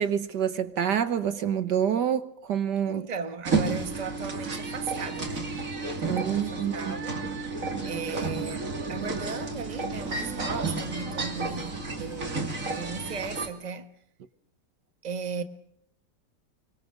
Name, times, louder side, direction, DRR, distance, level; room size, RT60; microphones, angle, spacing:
voice 1, 0.0-3.1 6.0-6.9, right 8 dB, 65° right, 1.7 m, -27 dB
voice 2, 2.9-5.6 6.0-7.2 7.8-13.9 15.0-15.4, right 5 dB, 25° right, 1.3 m, -37 dB
sound 1, 3.5-13.5, right 3 dB, 45° right, 3.0 m, -31 dB
25.5 x 25.0 x 6.6 m
omnidirectional pair, 2.0 m